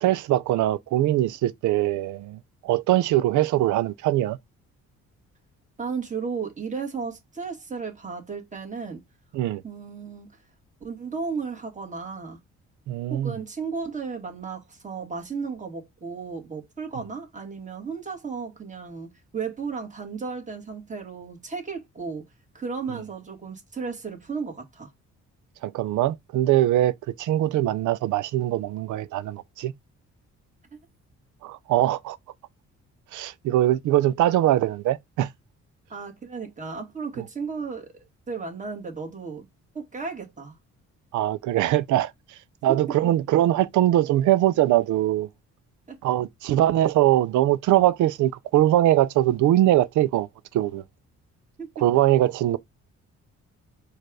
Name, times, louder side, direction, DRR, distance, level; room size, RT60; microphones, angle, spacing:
voice 1, 0.0-4.4 9.3-9.6 12.9-13.4 25.6-26.9 27.2-29.7 31.4-32.2 33.1-35.3 41.1-42.1 42.6-45.3 46.0-50.3 50.5-50.8 51.8-52.6, right 13 dB, 75° right, 0.5 m, -22 dB
voice 2, 5.8-9.0 9.6-10.3 10.8-12.4 13.1-22.3 22.5-24.9 35.9-37.9 38.3-39.5 39.7-40.5 42.7-42.8 45.9-46.0 51.6-51.8, right 5 dB, 25° right, 1.8 m, -34 dB
4.5 x 2.5 x 4.7 m
cardioid pair, 90°, 30 cm